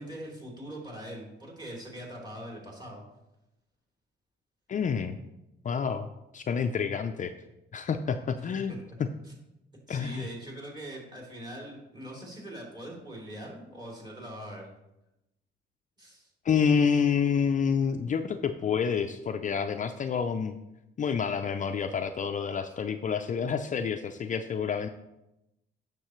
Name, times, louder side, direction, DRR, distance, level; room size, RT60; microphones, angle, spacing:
voice 1, 0.0-3.1 8.3-8.9 9.9-14.7 16.0-16.3, right 1 dB, 20° right, -3 dB, 3.1 m, -42 dB
voice 2, 4.7-5.2 5.6-7.3 7.7-9.1 9.9-10.3 16.4-20.6 21.0-24.9, left 6 dB, 40° left, 7 dB, 0.5 m, -28 dB
10.0 x 6.7 x 3.1 m, 0.91 s
cardioid pair, 90°, 20 cm